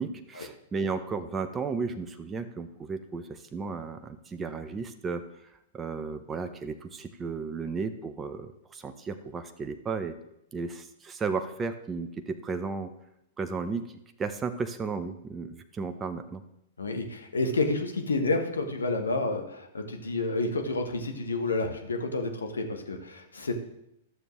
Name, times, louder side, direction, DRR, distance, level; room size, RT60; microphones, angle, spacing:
voice 1, 0.0-5.2 5.7-10.1 10.5-12.9 13.4-13.9 14.2-16.4, right 4 dB, 20° right, 8 dB, 0.6 m, -34 dB
voice 2, 16.8-23.5, left 2 dB, 80° left, 5 dB, 1.2 m, -29 dB
12.5 x 6.9 x 3.1 m, 0.80 s
figure-of-eight pair, 105°, 0 cm